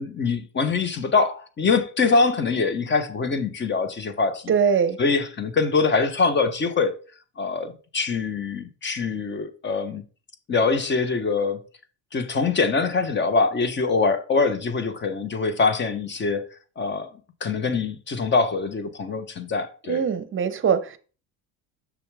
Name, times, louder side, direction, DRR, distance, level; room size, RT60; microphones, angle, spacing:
voice 1, 0.0-4.5 5.0-7.0 7.4-10.0 10.5-11.6 12.1-16.5 16.8-17.1 17.4-20.0, left 4 dB, 30° left, 1.1 m, -24 dB
voice 2, 4.5-5.0 19.9-21.0, right 7 dB, 35° right, 0.8 m, -22 dB
6.8 x 6.3 x 3.4 m
cardioid pair, 110°, 38 cm